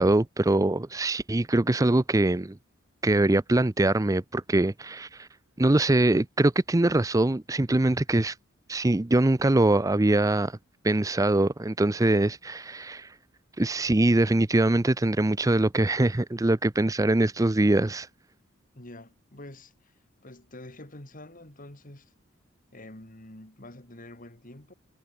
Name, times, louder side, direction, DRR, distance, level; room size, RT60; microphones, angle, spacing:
voice 1, 0.0-2.6 3.0-5.3 5.6-8.4 8.7-10.6 10.8-13.1 13.6-18.1, right 2 dB, 15° right, 0.5 m, -23 dB
voice 2, 18.7-19.9 20.2-22.1 22.7-24.7, left 1 dB, 40° left, 3.3 m, -46 dB
head